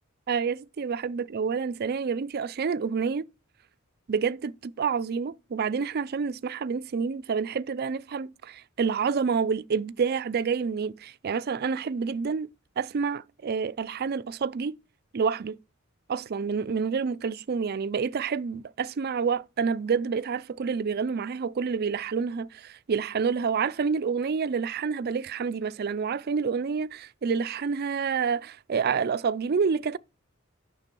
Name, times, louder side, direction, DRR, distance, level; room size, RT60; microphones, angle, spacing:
voice 1, 0.3-3.2 4.1-12.5 12.8-14.8 15.1-15.6 16.1-30.0, right 5 dB, 50° right, 0.4 m, -28 dB
9.8 x 6.0 x 4.5 m
head